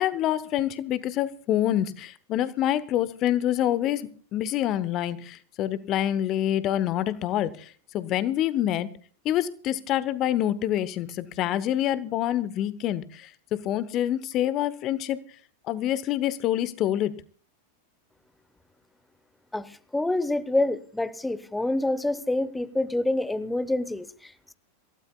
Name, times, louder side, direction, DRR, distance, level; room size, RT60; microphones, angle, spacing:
voice 1, 0.0-8.9 9.2-15.2 15.7-17.1, left 12 dB, 35° left, 16 dB, 0.9 m, -26 dB
voice 2, 19.5-24.5, left 2 dB, 5° left, 15 dB, 1.1 m, -27 dB
27.0 x 16.5 x 2.3 m, 0.41 s
figure-of-eight pair, 90°, 0 cm